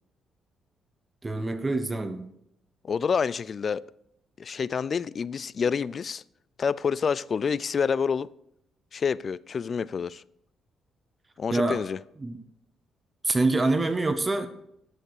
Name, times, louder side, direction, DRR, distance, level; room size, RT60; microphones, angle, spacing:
voice 1, 1.2-2.3 11.5-11.8 12.2-12.4 13.2-14.5, right 2 dB, 20° right, 0.9 m, -25 dB
voice 2, 2.8-3.8 4.4-6.2 6.6-8.3 8.9-10.2 11.4-12.0, left 6 dB, 45° left, 0.3 m, -28 dB
11.0 x 7.0 x 4.9 m
cardioid pair, 90°, 0 cm